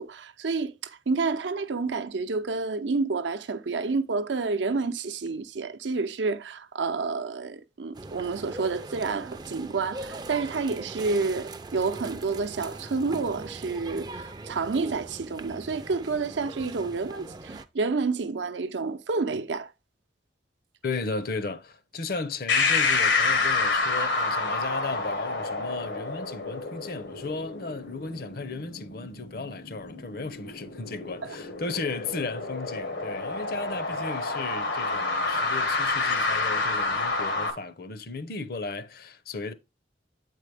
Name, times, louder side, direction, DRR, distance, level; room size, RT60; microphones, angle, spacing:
voice 1, 0.0-19.7 31.2-31.4, right 4 dB, 85° right, 0.6 m, -29 dB
sound 1, 7.9-17.6, right 2 dB, 25° right, 0.4 m, -41 dB
voice 2, 20.8-39.5, left 3 dB, 55° left, 0.7 m, -35 dB
sound 2, 22.5-37.5, left 3 dB, 85° left, 1.5 m, -28 dB
8.3 x 4.6 x 3.3 m
head